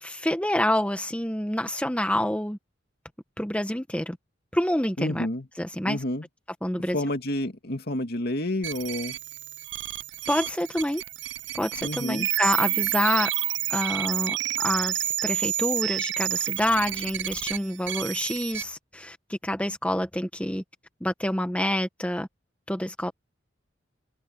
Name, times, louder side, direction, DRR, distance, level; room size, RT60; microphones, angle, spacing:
voice 1, 0.0-2.6 3.4-4.2 4.5-5.3 5.6-6.0 6.6-7.0 10.3-11.0 11.5-13.3 13.7-20.6 21.0-22.3 22.7-23.1, left 1 dB, 5° left, 1.4 m, -27 dB
voice 2, 5.0-5.5 5.9-6.2 6.9-9.2 11.8-12.3, left 1 dB, 60° left, 2.5 m, -29 dB
sound 1, 8.6-18.6, right 14 dB, 70° right, 0.5 m, -29 dB
head